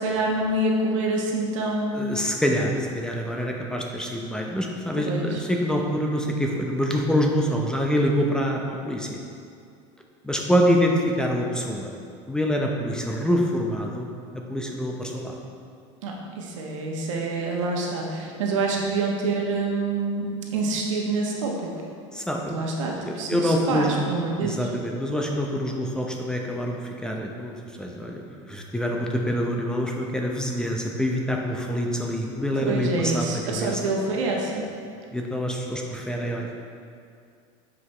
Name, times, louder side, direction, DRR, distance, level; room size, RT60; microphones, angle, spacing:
voice 1, 0.0-2.0 5.1-5.4 16.0-21.7 22.5-24.7 32.6-34.7, right 3 dB, 90° right, -1 dB, 1.1 m, -26 dB
voice 2, 1.9-9.2 10.2-11.9 12.3-14.1 14.3-15.3 22.1-22.6 23.0-23.9 24.4-33.8 35.1-36.5, equal, 5° left, 0 dB, 0.7 m, -26 dB
8.0 x 5.0 x 3.2 m, 2.4 s
supercardioid pair, 115°, 16 cm